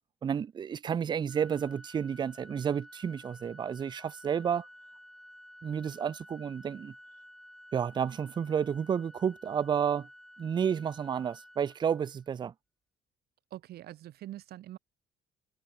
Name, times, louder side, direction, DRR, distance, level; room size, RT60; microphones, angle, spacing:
voice 1, 0.2-4.7 5.6-6.9 7.7-10.1 10.4-12.5, right 7 dB, 25° right, 0.4 m, -31 dB
Organ, 1.3-12.3, equal, ahead, 2.1 m, -53 dB
voice 2, 13.5-14.8, right 14 dB, 70° right, 3.2 m, -44 dB
cardioid pair, 110°, 17 cm